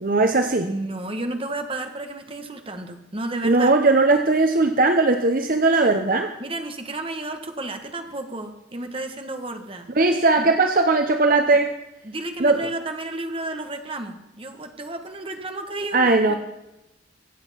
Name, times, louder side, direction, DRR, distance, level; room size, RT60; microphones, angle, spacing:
voice 1, 0.0-0.7 3.4-6.3 10.0-11.7 12.4-12.7 15.9-16.4, right 3 dB, 50° right, 6 dB, 0.9 m, -18 dB
voice 2, 0.6-3.7 6.4-9.9 10.4-10.5 12.0-16.4, right 2 dB, 30° right, 6 dB, 1.5 m, -32 dB
24.0 x 8.2 x 5.7 m, 0.92 s
head